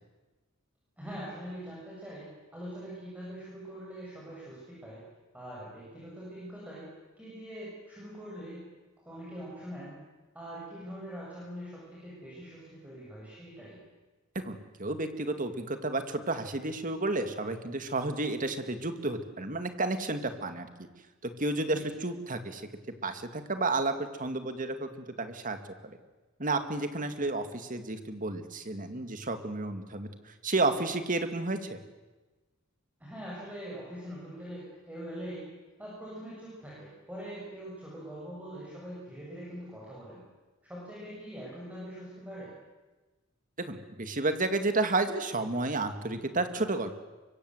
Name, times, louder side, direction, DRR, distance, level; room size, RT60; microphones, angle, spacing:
voice 1, 1.0-5.0 5.3-6.9 7.2-8.7 9.0-10.0 10.3-13.8 21.7-21.9 27.2-27.3 33.0-35.5 35.8-40.2 40.6-42.5, equal, 5° right, -6 dB, 7.7 m, -43 dB
voice 2, 14.4-20.7 21.2-22.7 23.0-24.9 25.2-25.6 25.8-26.0 26.4-31.8 43.6-46.9, right 2 dB, 40° right, 8 dB, 2.2 m, -31 dB
24.5 x 24.0 x 8.1 m, 1.2 s
head